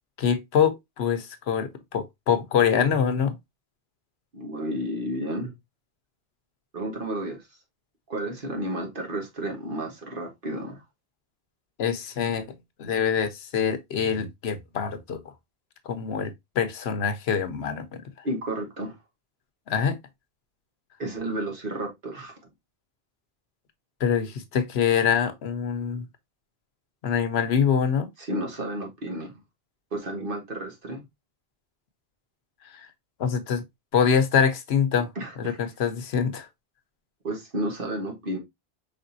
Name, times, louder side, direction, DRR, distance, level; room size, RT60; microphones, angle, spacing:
voice 1, 0.2-3.3 11.8-12.5 12.8-15.2 15.9-17.9 19.7-20.0 24.0-26.0 27.0-28.1 32.7-32.9 33.2-33.6 33.9-35.1 35.4-36.5, left 7 dB, 75° left, 1.0 m, -24 dB
voice 2, 4.3-5.5 6.7-7.5 8.1-10.8 18.2-18.9 21.0-22.4 28.2-29.3 29.9-31.0 35.1-35.6 37.2-38.4, right 1 dB, 55° right, 1.5 m, -32 dB
5.1 x 3.5 x 2.6 m
omnidirectional pair, 1.1 m